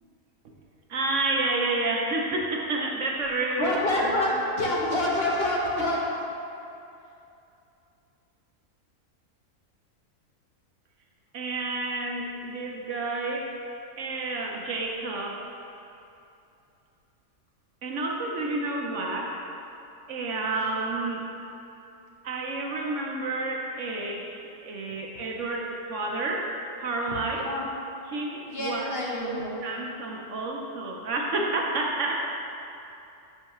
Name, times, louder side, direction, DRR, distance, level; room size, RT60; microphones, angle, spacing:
voice 1, 0.9-4.4 4.6-4.8 11.3-13.6 14.0-15.4 17.8-19.4 20.1-21.3 22.2-27.5 28.1-28.9 29.2-32.3, right 2 dB, 65° right, 0 dB, 1.0 m, -30 dB
voice 2, 3.6-4.3 4.6-6.0 27.4-27.7 28.5-29.6, left 1 dB, 50° left, -4 dB, 1.1 m, -27 dB
9.9 x 5.5 x 3.0 m, 2.8 s
omnidirectional pair, 1.5 m